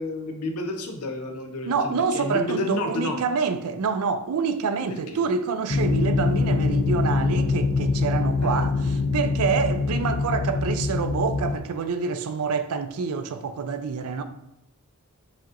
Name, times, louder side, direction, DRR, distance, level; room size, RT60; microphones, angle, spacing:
voice 1, 0.0-3.2 5.1-5.2 8.4-8.6, left 2 dB, 85° left, 0.7 m, -30 dB
voice 2, 1.7-14.2, right 5 dB, 75° right, 0.4 m, -27 dB
sound 1, 5.7-11.6, left 3 dB, 45° left, 0.5 m, -24 dB
7.1 x 2.9 x 2.5 m
head